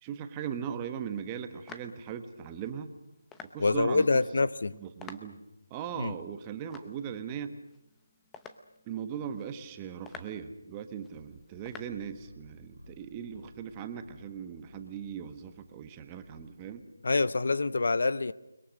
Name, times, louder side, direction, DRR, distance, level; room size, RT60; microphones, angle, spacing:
voice 1, 0.0-2.9 3.5-4.1 4.8-5.4 5.7-7.6 8.9-16.8, right 8 dB, 15° right, 8 dB, 1.2 m, -39 dB
sound 1, 1.1-11.9, left 5 dB, 10° left, 0.8 m, -53 dB
voice 2, 3.6-4.7 6.0-6.1 17.0-18.3, left 3 dB, 60° left, 17 dB, 0.8 m, -26 dB
sound 2, 11.1-16.8, left 1 dB, 90° left, 6.6 m, -57 dB
29.0 x 21.5 x 6.5 m, 0.92 s
figure-of-eight pair, 170°, 0 cm